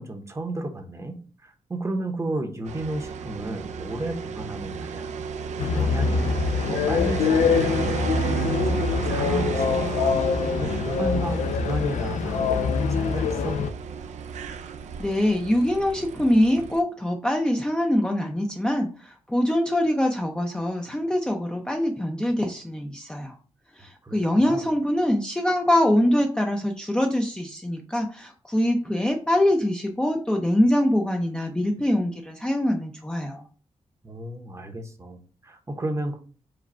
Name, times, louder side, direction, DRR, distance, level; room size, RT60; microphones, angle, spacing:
voice 1, 0.0-5.1 5.6-6.4 6.7-8.8 9.1-10.2 10.6-13.6 24.0-24.2 24.4-24.7 34.0-36.2, right 2 dB, 25° right, 5 dB, 0.8 m, -33 dB
sound 1, 2.6-16.8, right 6 dB, 75° right, 0.4 m, -33 dB
sound 2, 5.6-13.7, left 6 dB, 85° left, 0.4 m, -24 dB
voice 2, 15.0-23.4 23.8-33.4, left 1 dB, 5° left, 1 dB, 0.5 m, -24 dB
4.9 x 2.2 x 4.3 m, 0.39 s
wide cardioid pair, 115°, 12 cm